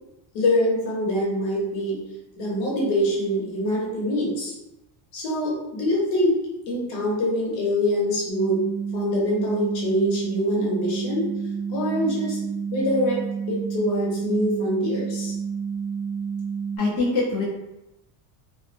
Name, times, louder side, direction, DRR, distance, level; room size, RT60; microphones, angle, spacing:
voice 1, 0.3-2.0 2.4-4.5 5.1-6.4 6.7-8.6 8.9-11.3 11.7-12.4 12.7-15.3, left 1 dB, 80° left, -4 dB, 1.1 m, -24 dB
sound 1, 8.3-16.8, right 6 dB, 50° right, 0.7 m, -30 dB
voice 2, 16.8-17.4, left 3 dB, 55° left, -7 dB, 0.8 m, -23 dB
2.6 x 2.3 x 2.5 m, 0.92 s
cardioid pair, 175°, 44 cm